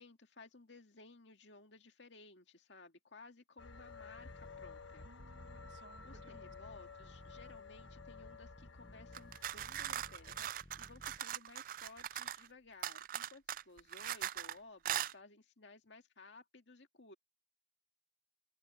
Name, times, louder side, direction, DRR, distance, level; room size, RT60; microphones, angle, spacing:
voice 1, 0.0-5.0 6.0-17.1, left 3 dB, 70° left, 2.0 m, -58 dB
sound 1, 3.6-10.5, left 4 dB, 90° left, 1.1 m, -53 dB
sound 2, 4.2-11.2, left 1 dB, 15° left, 0.7 m, -58 dB
voice 2, 5.0-6.5, right 2 dB, 80° right, 1.6 m, -62 dB
sound 3, 9.1-12.5 12.8-14.5 14.8-15.1, right 11 dB, 45° right, 0.3 m, -40 dB
open air
head